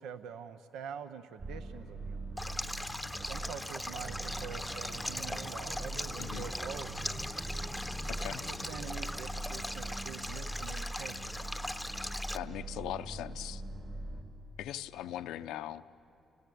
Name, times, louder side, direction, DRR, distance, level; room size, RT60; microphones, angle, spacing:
voice 1, 0.0-2.3 3.2-7.2 8.4-11.3, right 7 dB, 85° right, 11 dB, 0.7 m, -45 dB
sound 1, 1.4-14.2, right 1 dB, 50° right, 3.5 m, -42 dB
Stream, 2.4-12.4, left 1 dB, 5° left, 0.8 m, -40 dB
sound 2, 3.9-9.2, right 1 dB, 15° right, 1.1 m, -48 dB
voice 2, 8.1-8.5 12.3-13.6 14.6-15.9, left 12 dB, 90° left, 12 dB, 0.6 m, -40 dB
29.5 x 19.0 x 8.5 m, 3.0 s
cardioid pair, 90°, 0 cm